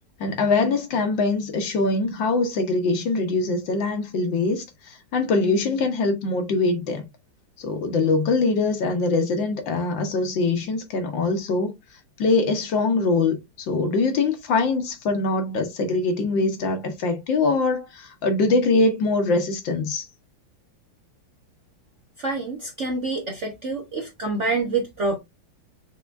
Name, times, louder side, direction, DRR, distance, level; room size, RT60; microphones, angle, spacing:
voice 1, 0.2-7.0 7.6-11.7 12.2-13.4 13.7-20.0, left 3 dB, 65° left, 1.6 m, -23 dB
voice 2, 22.2-25.2, right 3 dB, 50° right, 0.9 m, -27 dB
5.7 x 3.6 x 2.5 m
omnidirectional pair, 2.3 m